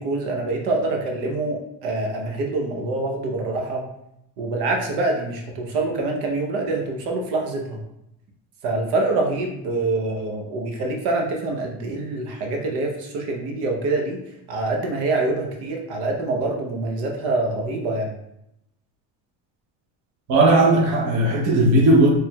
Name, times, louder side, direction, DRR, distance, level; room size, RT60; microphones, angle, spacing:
voice 1, 0.0-3.8 4.4-7.8 8.6-14.2 14.5-18.2, right 2 dB, 80° right, 0.9 m, -25 dB
voice 2, 20.3-22.1, right 2 dB, 50° right, 0.8 m, -16 dB
4.5 x 3.3 x 2.3 m
cardioid pair, 165°, 39 cm